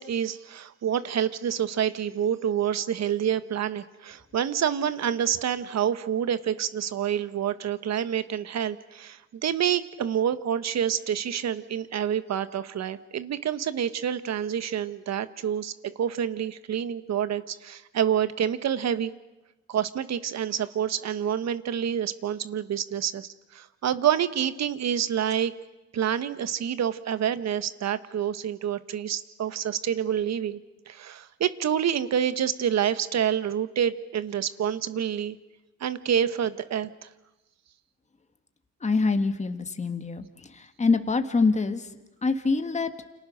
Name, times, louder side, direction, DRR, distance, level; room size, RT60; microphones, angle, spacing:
voice 1, 0.0-19.1 19.7-25.5 25.9-30.6 30.9-35.3 35.8-36.9, right 9 dB, 60° right, 13 dB, 1.4 m, -27 dB
voice 2, 38.8-41.9 42.2-42.9, left 4 dB, 25° left, 8 dB, 1.8 m, -25 dB
29.0 x 26.5 x 6.5 m, 1.0 s
cardioid pair, 90°, 30 cm